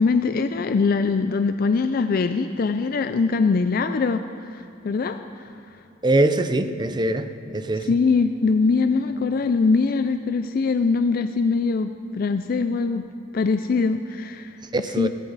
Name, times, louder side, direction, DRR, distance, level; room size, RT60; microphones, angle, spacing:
voice 1, 0.0-4.2 4.5-5.5 7.9-13.0 13.3-14.6 15.0-15.1, left 4 dB, 50° left, 9 dB, 0.4 m, -22 dB
voice 2, 6.0-7.9 14.7-15.1, right 2 dB, 25° right, 10 dB, 0.6 m, -22 dB
16.5 x 15.5 x 4.0 m, 2.6 s
head